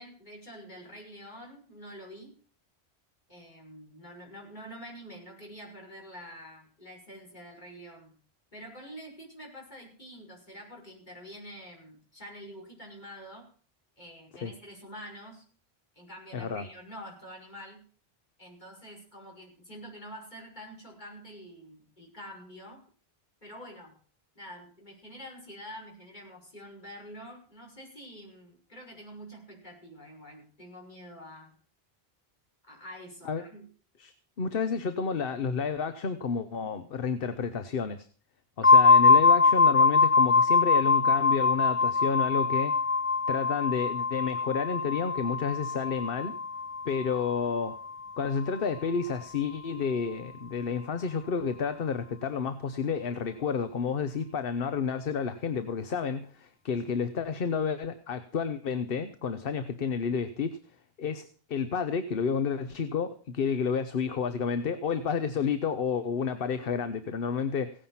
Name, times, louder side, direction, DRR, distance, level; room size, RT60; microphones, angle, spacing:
voice 1, 0.0-2.3 3.3-8.2 8.5-13.4 14.0-15.4 16.0-17.8 18.4-22.8 23.4-24.0 24.3-31.5 32.6-33.7, equal, 45° left, 0 dB, 6.2 m, -46 dB
voice 2, 16.3-16.7 33.2-33.4 34.0-34.1 34.4-38.1 38.6-42.8 43.3-46.4 46.8-47.8 48.2-60.6 61.0-67.7, left 6 dB, 65° left, 11 dB, 1.1 m, -30 dB
sound 1, 38.6-48.3, left 4 dB, 15° left, 0.5 m, -23 dB
17.0 x 10.0 x 5.7 m, 0.43 s
omnidirectional pair, 1.0 m